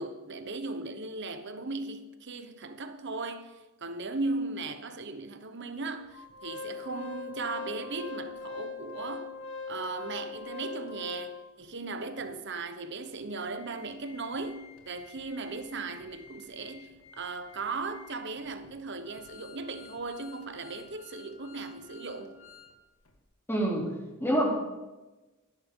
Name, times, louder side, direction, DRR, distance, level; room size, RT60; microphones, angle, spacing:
voice 1, 0.0-9.3 9.7-22.4, right 3 dB, 55° right, 1.0 m, -37 dB
Organ, 6.1-11.7 12.2-12.3 12.5-12.7 13.1-22.7 23.1-23.2, left 4 dB, 75° left, 2.0 m, -44 dB
voice 2, 23.5-23.9 24.2-24.5, right 1 dB, 10° left, 3.0 m, -26 dB
16.5 x 10.5 x 3.8 m
head